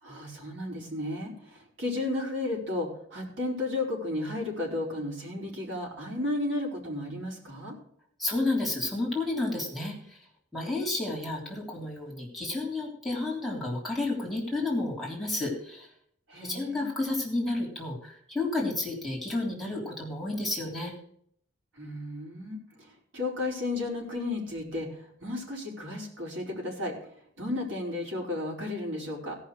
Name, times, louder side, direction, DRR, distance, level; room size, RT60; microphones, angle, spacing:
voice 1, 0.0-7.8 16.3-16.9 21.7-27.0 27.4-29.4, left 2 dB, 70° right, -2 dB, 4.6 m, -33 dB
voice 2, 8.2-10.2 10.5-15.9 16.4-20.9, left 2 dB, ahead, -3 dB, 3.2 m, -31 dB
17.0 x 5.7 x 6.3 m, 0.65 s
head